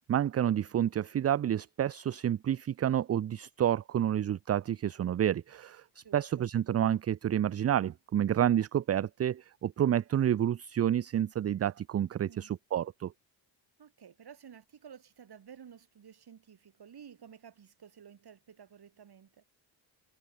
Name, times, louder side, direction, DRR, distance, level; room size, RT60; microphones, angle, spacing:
voice 1, 0.1-13.1, right 10 dB, 35° right, 0.4 m, -29 dB
voice 2, 6.0-6.5 12.2-12.5 13.8-19.4, right 8 dB, 55° right, 3.2 m, -53 dB
supercardioid pair, 65°, 47 cm